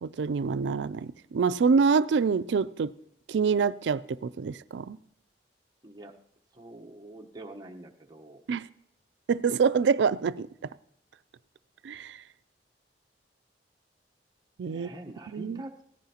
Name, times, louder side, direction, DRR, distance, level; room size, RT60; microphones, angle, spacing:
voice 1, 0.0-2.9 3.3-5.0 8.5-8.7 9.3-10.5 11.8-12.2 14.6-14.9 15.3-15.6, right 5 dB, 90° right, 0.4 m, -26 dB
voice 2, 5.8-6.1 6.5-8.4 14.7-15.8, right 1 dB, 25° right, 1.0 m, -45 dB
17.5 x 14.5 x 2.9 m
head